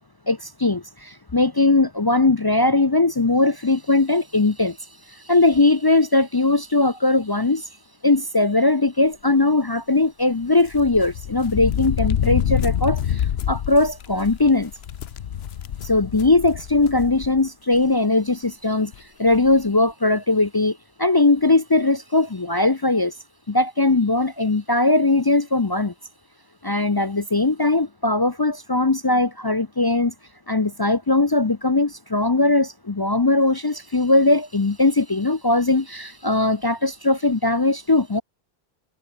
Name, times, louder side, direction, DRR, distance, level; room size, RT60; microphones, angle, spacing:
voice 1, 0.3-4.8 5.1-7.7 8.0-14.7 15.8-18.9 19.2-23.2 23.5-25.9 26.6-30.1 30.5-38.2, left 2 dB, 25° left, 0.6 m, -20 dB
sound 1, 10.7-17.4 17.7-17.8 18.9-19.0 19.3-19.5, left 9 dB, 80° left, 1.0 m, -27 dB
omnidirectional pair, 1.0 m